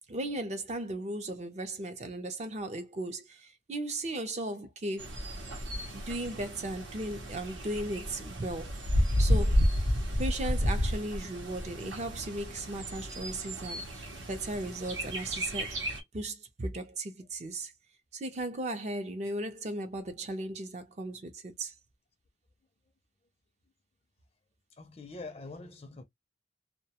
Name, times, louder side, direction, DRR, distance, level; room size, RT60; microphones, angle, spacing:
voice 1, 0.1-5.1 5.9-8.7 9.2-9.6 10.2-15.7 16.1-17.7 18.1-21.7, right 1 dB, 40° right, 0.5 m, -36 dB
Bird, 5.0-16.0, equal, 90° right, 0.8 m, -31 dB
voice 2, 24.8-26.0, left 3 dB, 30° left, 0.4 m, -44 dB
2.3 x 2.1 x 2.8 m
head